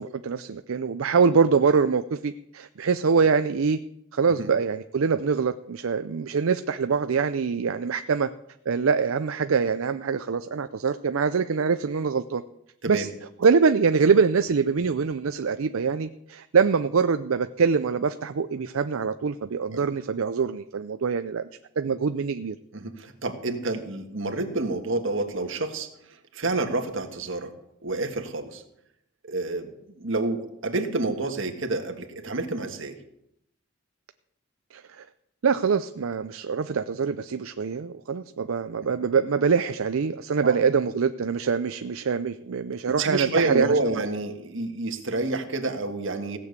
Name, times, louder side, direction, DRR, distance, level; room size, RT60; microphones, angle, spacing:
voice 1, 0.0-3.8 4.1-8.3 8.7-12.4 12.9-13.1 13.4-21.5 21.8-22.6 34.7-35.1 35.4-43.8, right 5 dB, 80° right, 10 dB, 0.5 m, -24 dB
voice 2, 22.7-25.9 26.3-27.5 27.8-28.6 29.3-29.7 30.0-32.9 38.8-38.9 40.4-40.6 43.0-46.4, right 2 dB, 65° right, 5 dB, 1.7 m, -28 dB
16.5 x 7.0 x 8.1 m, 0.79 s
head